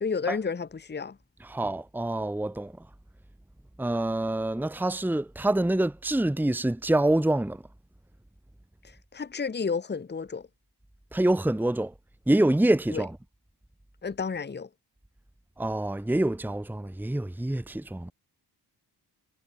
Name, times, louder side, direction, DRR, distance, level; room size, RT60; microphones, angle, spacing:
voice 1, 0.0-1.2 8.8-10.5 12.9-13.0 14.0-14.7, left 5 dB, 25° left, 1.1 m, -31 dB
voice 2, 1.5-2.7 3.8-7.6 11.1-11.9 12.3-13.1 15.6-18.1, right 1 dB, 5° right, 1.1 m, -26 dB
wide cardioid pair, 165°, 42 cm